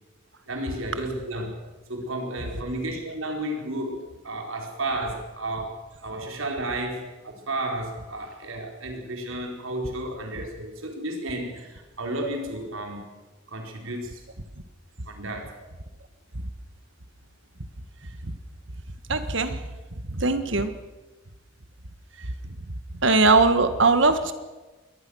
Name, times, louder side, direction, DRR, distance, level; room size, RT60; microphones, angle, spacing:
voice 1, 0.5-1.5 1.9-5.7 6.0-13.0 13.5-14.2 15.1-15.5, right 1 dB, 90° right, 2 dB, 4.5 m, -32 dB
voice 2, 19.1-19.6 19.9-20.7 22.2-22.3 22.9-24.3, right 3 dB, 65° right, 10 dB, 1.7 m, -21 dB
23.0 x 19.0 x 6.5 m, 1.2 s
head